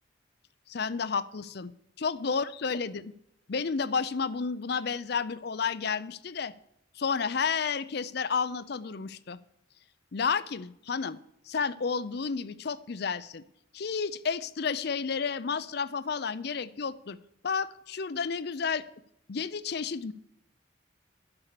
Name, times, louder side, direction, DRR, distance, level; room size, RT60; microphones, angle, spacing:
voice 1, 0.7-1.7 2.0-3.1 3.5-6.5 7.0-9.4 10.1-11.2 11.5-13.4 13.7-17.2 17.4-18.8 19.3-20.1, left 5 dB, 55° left, 14 dB, 0.5 m, -31 dB
11.0 x 6.9 x 6.8 m, 0.78 s
head